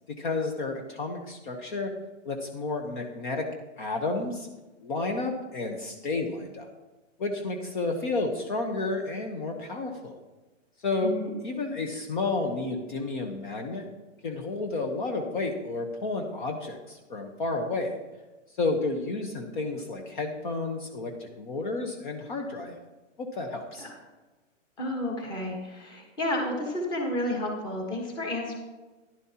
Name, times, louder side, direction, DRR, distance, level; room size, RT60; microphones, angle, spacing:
voice 1, 0.1-1.9 2.2-3.5 3.8-4.5 4.8-6.7 7.2-10.2 10.8-11.1 11.4-13.8 14.2-18.0 18.6-22.8 23.2-23.9, left 3 dB, 40° left, 4 dB, 1.0 m, -31 dB
voice 2, 11.0-11.3 23.8-23.9 24.8-28.5, left 1 dB, 10° left, 1 dB, 1.3 m, -31 dB
12.0 x 11.0 x 2.9 m, 1.2 s
hypercardioid pair, 160°, 38 cm